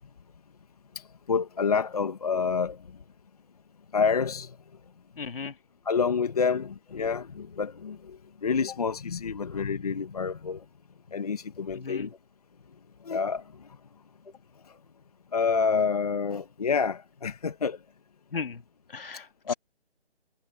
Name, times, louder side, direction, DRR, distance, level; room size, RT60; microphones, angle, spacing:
voice 1, 0.9-2.8 3.9-4.6 5.8-10.6 11.1-12.1 13.0-13.7 15.3-17.8 19.5-19.6, left 5 dB, 35° left, 1.2 m, -28 dB
voice 2, 5.2-5.5 6.4-6.5 11.7-12.2 18.3-18.6 18.9-19.5, left 5 dB, 60° left, 2.8 m, -36 dB
hypercardioid pair, 175°, 32 cm